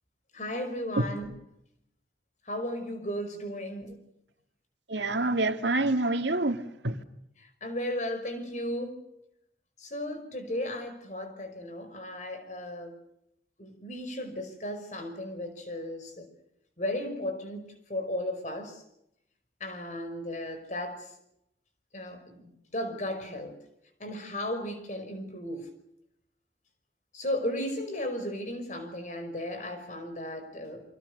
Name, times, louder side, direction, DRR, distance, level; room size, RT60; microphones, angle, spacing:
voice 1, 0.3-1.3 2.5-4.1 7.4-9.0 9.8-13.0 13.6-16.3 16.8-18.8 19.6-21.1 21.9-23.6 24.0-25.7 27.1-31.0, left 1 dB, 45° left, 5.3 m, -35 dB
voice 2, 4.9-7.0, right 2 dB, 90° right, 2.2 m, -27 dB
29.0 x 24.5 x 6.7 m
head